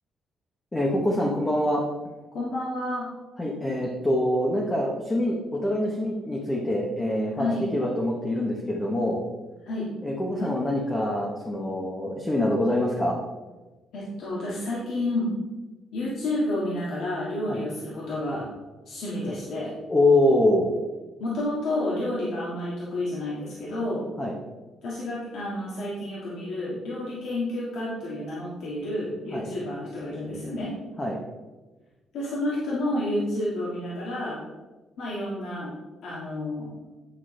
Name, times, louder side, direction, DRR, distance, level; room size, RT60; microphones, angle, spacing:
voice 1, 0.7-1.8 3.4-9.2 10.0-13.2 17.5-17.6 19.9-20.7 24.2-24.3 29.3-29.5 31.0-31.2, left 1 dB, 15° left, -2 dB, 0.9 m, -25 dB
voice 2, 2.3-3.1 7.4-7.7 9.7-9.9 10.4-10.5 13.9-15.3 15.9-18.4 18.9-19.7 21.2-24.1 24.8-30.7 32.1-34.4 35.0-35.8 36.0-36.7, left 1 dB, 65° left, -6 dB, 1.8 m, -30 dB
10.0 x 6.0 x 3.2 m, 1.2 s
cardioid pair, 175°, 0 cm